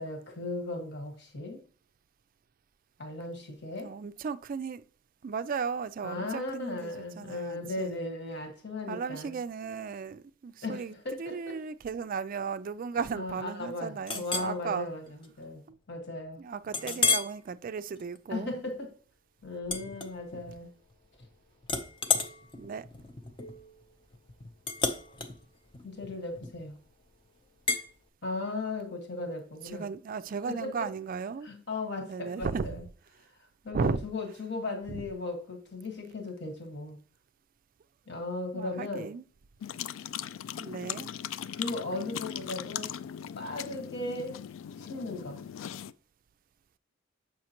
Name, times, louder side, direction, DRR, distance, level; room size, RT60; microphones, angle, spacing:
voice 1, 0.0-1.6 3.0-3.9 6.0-9.4 10.6-11.5 13.2-16.4 16.8-17.0 18.3-18.9 19.4-20.7 25.8-26.8 28.2-29.9 30.4-30.9 31.4-32.8 33.6-37.0 38.1-39.1 41.5-42.9 43.3-44.5 44.8-45.4, left 2 dB, 60° left, 1.5 m, -37 dB
voice 2, 3.8-4.8 5.2-8.0 8.9-14.9 15.7-15.8 16.4-18.6 22.6-22.9 29.6-31.5 32.0-32.7 33.7-34.0 34.9-35.1 38.5-39.2 40.6-41.1, right 5 dB, 45° right, 0.3 m, -35 dB
Chink clink, 14.1-14.5 15.1-15.3 15.7-15.8 16.7-17.4 17.9-18.2 19.6-20.6 20.9-21.3 21.6-26.8 27.7-27.9, left 4 dB, 25° left, 0.6 m, -32 dB
sound 1, 39.6-45.9, left 10 dB, 85° left, 0.3 m, -39 dB
7.5 x 5.7 x 2.9 m
head